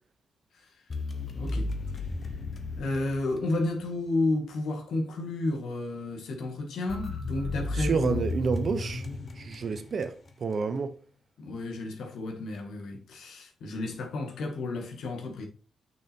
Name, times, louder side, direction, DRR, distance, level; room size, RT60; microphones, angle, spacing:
sound 1, 0.9-3.9 6.9-10.3, left 2 dB, 35° left, 1.2 m, -34 dB
voice 1, 1.3-1.7 2.8-8.2 11.4-15.5, left 2 dB, 75° left, 1.9 m, -31 dB
voice 2, 7.7-9.1 9.4-10.1 10.4-10.9, right 5 dB, 40° right, 0.8 m, -29 dB
6.3 x 6.2 x 4.4 m
wide cardioid pair, 150°, 0 cm